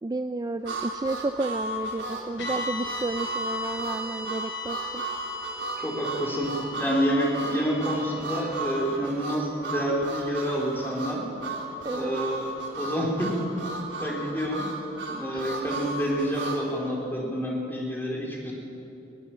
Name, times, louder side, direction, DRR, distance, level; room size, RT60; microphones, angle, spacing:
voice 1, 0.0-5.0 11.8-12.2 15.3-15.5, right 2 dB, 20° right, 10 dB, 0.4 m, -31 dB
Harmonica, 0.6-16.6, right 2 dB, 80° right, 3.3 m, -34 dB
sound 1, 2.4-10.7, left 2 dB, 85° left, 3.9 m, -40 dB
voice 2, 5.8-11.2 11.9-12.4 12.8-13.4 14.0-14.7 15.1-18.5, equal, 10° left, -3 dB, 4.2 m, -28 dB
22.0 x 18.0 x 7.6 m, 2.8 s
head